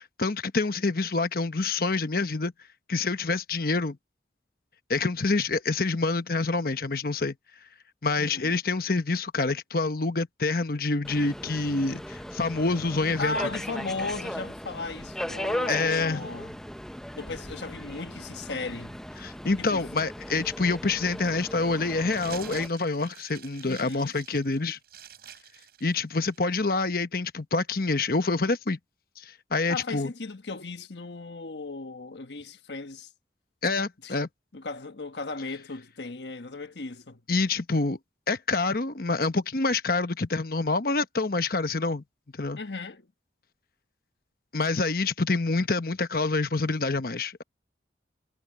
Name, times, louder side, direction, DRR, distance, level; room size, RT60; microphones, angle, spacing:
voice 1, 0.0-2.5 2.9-4.0 4.9-7.3 8.0-13.4 15.7-16.3 19.2-24.8 25.8-28.8 29.2-30.1 33.6-34.3 37.3-38.0 38.3-42.0 42.3-42.6 44.5-47.4, left 3 dB, 55° left, 1.1 m, -27 dB
voice 2, 8.2-8.6 13.2-16.6 17.2-19.0 19.6-19.8 23.6-24.1 29.7-33.1 34.0-34.1 34.5-37.2 42.6-43.1, left 3 dB, 75° left, 1.3 m, -36 dB
Subway metro underground, 11.0-22.7, equal, 5° left, 0.6 m, -37 dB
sound 1, 22.1-26.5, right 9 dB, 60° right, 7.9 m, -47 dB
head